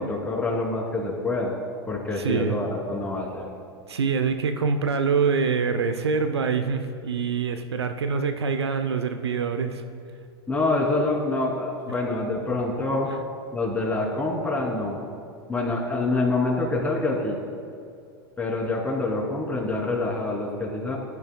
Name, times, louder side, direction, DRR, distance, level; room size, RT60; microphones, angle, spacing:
voice 1, 0.0-1.5 1.9-3.5 10.5-13.1 13.5-15.0 15.5-17.4 18.4-21.0, left 2 dB, 10° left, -2 dB, 3.2 m, -26 dB
voice 2, 2.2-2.6 3.9-9.8, right 5 dB, 85° right, 8 dB, 0.7 m, -25 dB
20.0 x 12.0 x 2.4 m, 2.4 s
hypercardioid pair, 95°, 13 cm